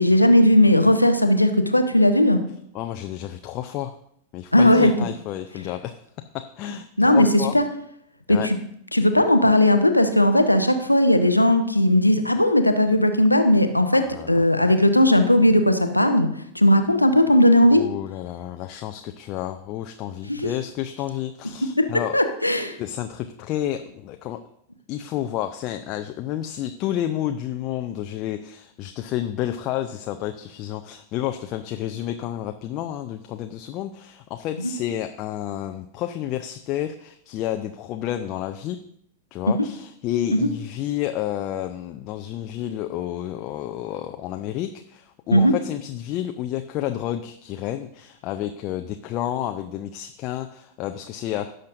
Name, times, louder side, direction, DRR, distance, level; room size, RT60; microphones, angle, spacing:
voice 1, 0.0-2.4 4.5-4.9 7.0-7.6 8.3-8.6 8.9-16.3 16.5-17.8 20.3-20.5 21.8-22.8 39.5-39.6 40.3-40.5 45.3-45.5, left 1 dB, 85° left, 7 dB, 0.7 m, -17 dB
voice 2, 2.7-3.9 4.3-6.0 6.3-7.5 8.3-8.5 14.0-14.4 17.7-22.2 22.8-24.4 24.9-38.8 39.3-51.5, left 12 dB, 40° left, 6 dB, 0.5 m, -30 dB
17.0 x 6.5 x 2.6 m, 0.71 s
figure-of-eight pair, 90°, 0 cm